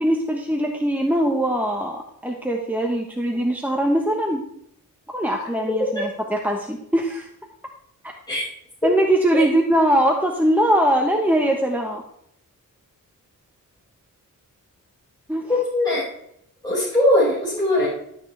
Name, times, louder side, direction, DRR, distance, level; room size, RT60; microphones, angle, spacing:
voice 1, 0.0-4.4 5.1-7.3 8.8-12.0 15.3-15.5, right 1 dB, 5° right, 1 dB, 1.2 m, -21 dB
voice 2, 15.5-16.1 16.6-17.9, left 1 dB, 15° left, -10 dB, 5.4 m, -20 dB
13.0 x 9.1 x 3.4 m, 0.70 s
wide cardioid pair, 105°, 33 cm